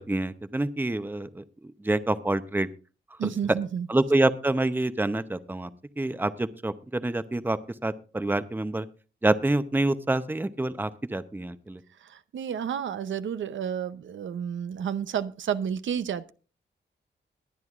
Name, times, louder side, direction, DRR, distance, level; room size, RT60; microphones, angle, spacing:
voice 1, 0.0-2.7 3.9-5.7 6.0-8.9 9.2-11.8, right 2 dB, 10° right, 12 dB, 0.7 m, -27 dB
voice 2, 3.2-3.9 12.0-16.3, right 8 dB, 85° right, 12 dB, 0.7 m, -31 dB
21.5 x 9.7 x 2.5 m, 0.36 s
wide cardioid pair, 95°, 19 cm